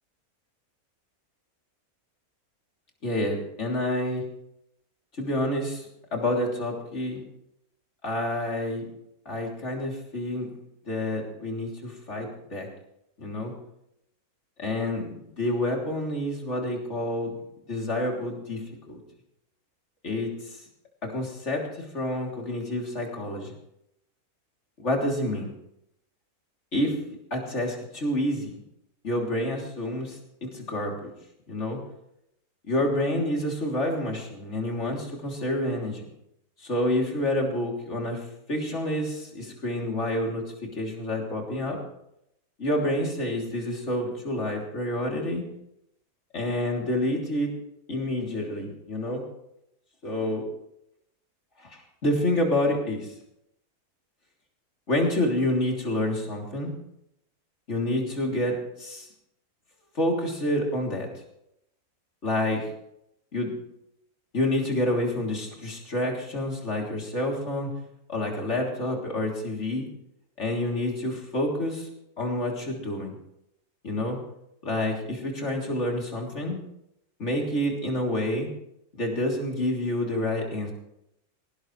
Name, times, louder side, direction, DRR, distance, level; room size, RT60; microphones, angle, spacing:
voice 1, 3.0-4.2 5.2-7.2 8.0-8.9 9.3-10.5 10.9-12.7 13.2-13.5 14.6-17.4 17.7-19.0 20.0-20.6 21.0-23.5 24.8-25.5 26.7-27.0 27.3-28.6 29.0-31.1 31.5-31.8 32.7-36.1 36.6-41.8 42.6-45.4 46.3-47.5 47.9-49.3 50.0-50.4 51.6-53.1 54.9-56.7 57.7-59.1 60.0-61.1 62.2-62.7 63.3-63.5 64.3-67.7 68.1-69.9 70.4-71.9 72.2-73.1 73.8-74.2 74.6-76.6 77.2-78.5 78.9-80.7, left 1 dB, 50° left, 0 dB, 3.6 m, -28 dB
18.5 x 18.0 x 3.3 m, 0.79 s
omnidirectional pair, 1.6 m